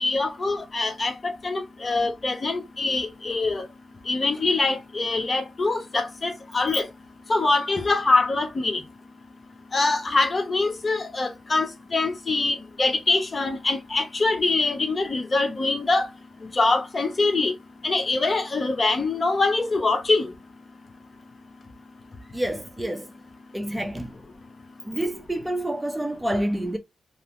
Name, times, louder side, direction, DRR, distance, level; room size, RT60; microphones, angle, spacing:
voice 1, 0.0-3.6 4.1-6.9 7.3-8.8 9.7-16.1 16.5-17.5 17.8-20.3, left 3 dB, 40° left, 0.7 m, -24 dB
voice 2, 22.3-23.1 23.5-24.2 24.9-26.8, right 1 dB, 15° right, 0.6 m, -28 dB
2.6 x 2.0 x 2.9 m
cardioid pair, 60°, 0 cm